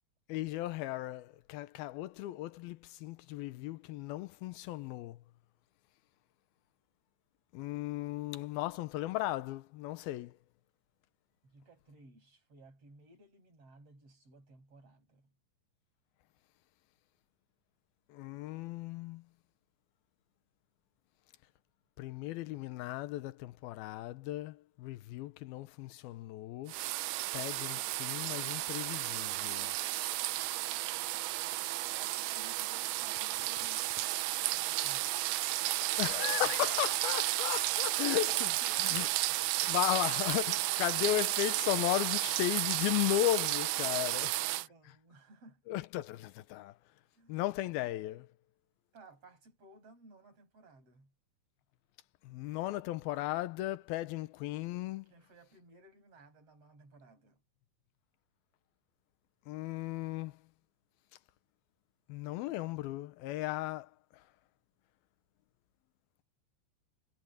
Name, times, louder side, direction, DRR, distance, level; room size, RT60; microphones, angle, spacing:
voice 1, 0.3-5.2 7.5-10.4 18.1-19.2 22.0-26.8 27.3-29.8 36.0-38.5 38.9-39.1 39.7-44.3 45.7-46.7 47.3-48.3 52.2-55.1 59.5-60.3 62.1-63.9, left 15 dB, 85° left, 2.8 m, -35 dB
voice 2, 11.4-15.3 31.9-35.7 36.4-36.5 37.7-39.1 42.1-42.3 43.9-45.6 47.2-47.4 48.9-51.1 55.1-57.4, right 3 dB, 40° right, 8.9 m, -57 dB
sound 1, 26.7-44.7, right 17 dB, 80° right, 2.0 m, -33 dB
omnidirectional pair, 4.2 m